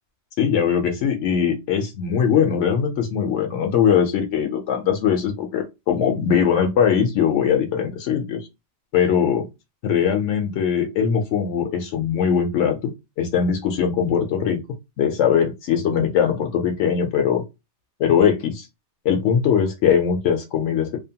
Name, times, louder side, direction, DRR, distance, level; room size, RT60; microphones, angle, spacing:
voice 1, 0.4-8.5 8.9-9.5 9.8-14.6 15.0-17.4 18.0-18.7 19.0-21.0, left 7 dB, 85° left, 0.9 m, -21 dB
2.8 x 2.1 x 2.7 m
omnidirectional pair, 1.2 m